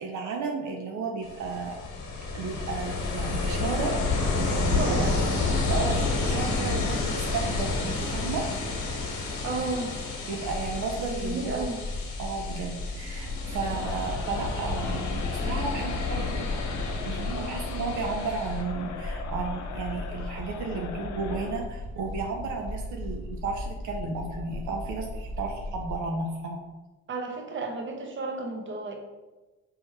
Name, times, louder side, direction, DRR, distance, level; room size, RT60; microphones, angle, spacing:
voice 1, 0.0-1.8 2.3-5.2 5.7-8.5 10.3-11.7 12.2-16.5 17.0-26.6, right 4 dB, 75° right, 1 dB, 0.6 m, -33 dB
Ocean, 1.2-18.6, left 3 dB, 90° left, 1.0 m, -30 dB
voice 2, 4.7-5.2 9.4-10.0 11.1-11.8 16.4-16.5 27.1-28.9, right 3 dB, 40° right, 3 dB, 0.9 m, -32 dB
sound 1, 10.4-26.0, left 2 dB, 10° left, 0.8 m, -37 dB
Crowd, 13.6-21.7, left 5 dB, 75° left, 0.6 m, -40 dB
4.8 x 3.0 x 3.2 m, 1.1 s
cardioid pair, 90°, 30 cm